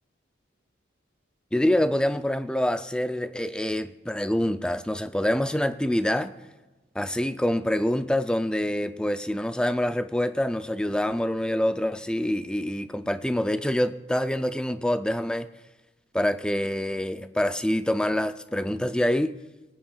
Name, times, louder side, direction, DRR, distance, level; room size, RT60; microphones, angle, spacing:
voice 1, 1.5-6.3 7.0-15.5 16.1-19.4, left 1 dB, 5° left, 10 dB, 0.3 m, -26 dB
24.0 x 8.7 x 2.3 m, 1.2 s
head